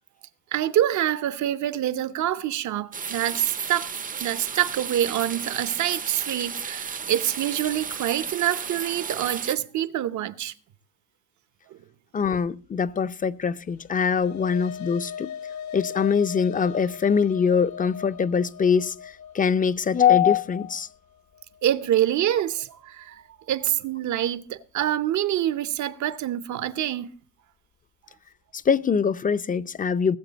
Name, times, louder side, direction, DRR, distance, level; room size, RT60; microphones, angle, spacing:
voice 1, 0.5-3.9 4.2-10.5 11.7-11.8 21.6-23.2 23.5-27.1, right 12 dB, 70° right, 0.8 m, -26 dB
sound 1, 2.9-9.6, right 6 dB, 25° right, 0.5 m, -33 dB
voice 2, 12.1-15.3 15.7-20.9 28.5-30.2, left 6 dB, 25° left, 0.5 m, -23 dB
sound 2, 13.7-22.2, left 8 dB, 70° left, 1.3 m, -40 dB
19.0 x 7.6 x 4.0 m
cardioid pair, 90°, 30 cm